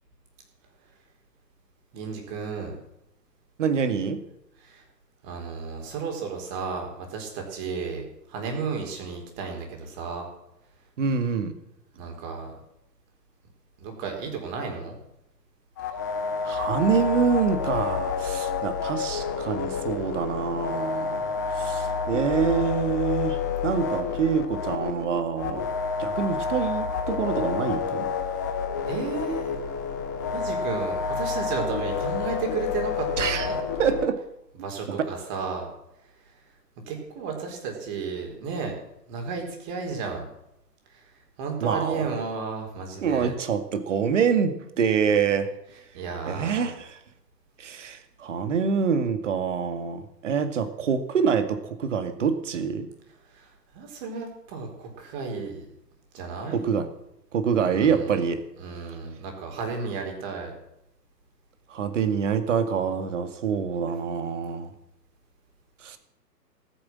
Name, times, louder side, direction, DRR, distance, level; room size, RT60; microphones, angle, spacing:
voice 1, 1.9-2.7 4.6-4.8 5.2-8.0 8.3-10.3 12.0-12.5 13.8-15.0 28.9-29.5 30.3-33.6 34.6-35.7 36.9-38.8 39.1-40.3 41.4-43.4 45.9-46.7 53.3-53.4 53.7-55.7 56.1-56.6 57.7-58.2 58.6-60.5, right 5 dB, 25° right, 2 dB, 4.2 m, -33 dB
voice 2, 3.6-4.2 11.0-11.5 16.4-21.3 21.6-23.4 23.6-25.7 26.0-28.1 33.2-33.5 33.8-34.2 34.9-35.0 41.6-42.1 43.0-45.5 46.2-47.0 47.6-52.9 56.5-56.9 57.3-58.4 61.7-64.7 65.8-66.0, right 6 dB, 45° right, 9 dB, 2.1 m, -26 dB
sound 1, 15.8-34.1, left 5 dB, 10° left, 0.6 m, -29 dB
18.0 x 10.0 x 7.5 m, 0.83 s
figure-of-eight pair, 130°, 49 cm